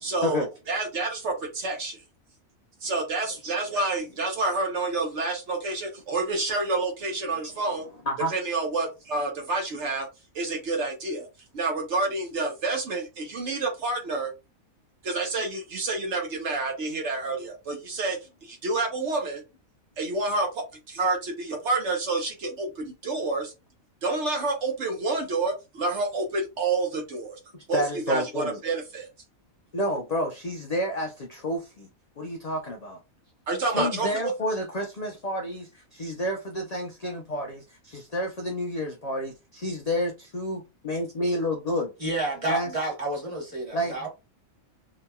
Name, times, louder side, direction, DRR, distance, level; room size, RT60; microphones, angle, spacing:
voice 1, 0.0-2.0 2.8-7.9 8.3-10.1 10.3-11.3 11.5-14.3 15.0-19.4 20.0-23.5 24.0-27.4 27.7-29.1 33.5-34.3, right 3 dB, 60° right, 1.0 m, -28 dB
voice 2, 27.5-28.6 29.7-31.9 32.2-33.0 33.6-41.9 42.5-42.7 43.7-44.1, equal, 65° left, 0.4 m, -30 dB
voice 3, 42.0-44.1, right 2 dB, 25° right, 1.2 m, -29 dB
2.9 x 2.7 x 2.2 m
omnidirectional pair, 1.4 m